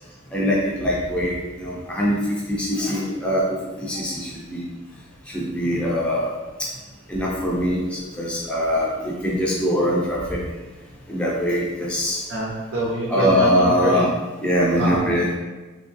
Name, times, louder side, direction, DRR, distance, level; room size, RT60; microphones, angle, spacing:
voice 1, 0.3-4.6 5.3-6.3 7.1-10.4 11.1-12.2 13.1-14.1 14.4-15.3, equal, 5° left, -5 dB, 0.5 m, -22 dB
voice 2, 12.3-14.0 14.8-15.3, equal, 65° right, -4 dB, 0.6 m, -25 dB
3.5 x 2.9 x 2.6 m, 1.2 s
head